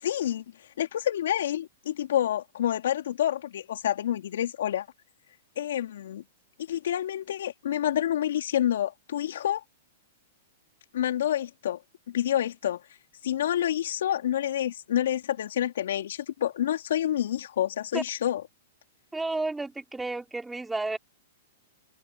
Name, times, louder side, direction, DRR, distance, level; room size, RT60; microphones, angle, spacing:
voice 1, 0.0-0.4 0.8-4.9 5.6-6.2 6.7-9.6 10.9-11.8 12.1-12.8 13.2-18.4, left 11 dB, 75° left, 3.8 m, -28 dB
voice 2, 19.1-21.0, right 3 dB, 5° right, 3.6 m, -31 dB
hypercardioid pair, 130°, 0 cm